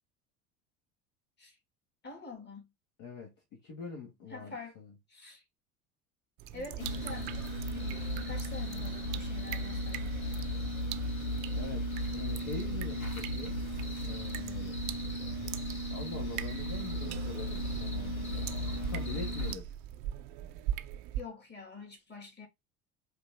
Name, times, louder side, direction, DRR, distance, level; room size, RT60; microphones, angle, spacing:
voice 1, 2.0-2.7 4.3-4.8 5.1-5.4 6.5-7.3 7.7-10.4 21.2-22.5, left 4 dB, 25° left, 2.6 m, -46 dB
voice 2, 3.0-4.9 11.5-13.6 14.0-14.8 15.9-18.5 18.9-19.8, left 4 dB, 50° left, 1.8 m, -44 dB
sound 1, 6.4-21.2, right 11 dB, 50° right, 0.6 m, -42 dB
sound 2, 6.8-19.5, left 1 dB, 90° left, 1.1 m, -36 dB
4.9 x 2.8 x 3.7 m
figure-of-eight pair, 65°, 41 cm